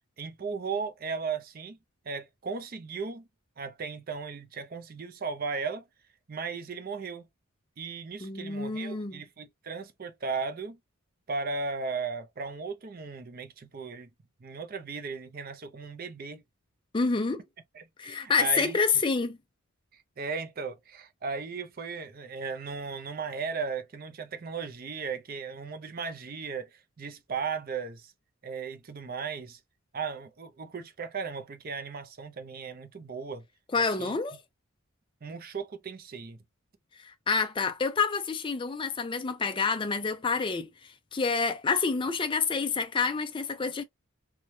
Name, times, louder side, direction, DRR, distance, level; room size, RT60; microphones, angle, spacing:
voice 1, 0.2-1.8 2.1-3.3 3.6-5.9 6.3-7.3 7.8-10.8 11.3-14.1 14.4-16.4 17.7-18.8 19.9-28.1 28.4-29.6 29.9-33.4 34.0-34.1 35.2-36.4, right 5 dB, 40° right, 0.5 m, -36 dB
voice 2, 8.2-9.2 16.9-17.4 18.0-19.4 33.7-34.4 37.0-40.7 41.1-43.8, left 5 dB, 20° left, 0.4 m, -28 dB
3.1 x 2.2 x 2.6 m
head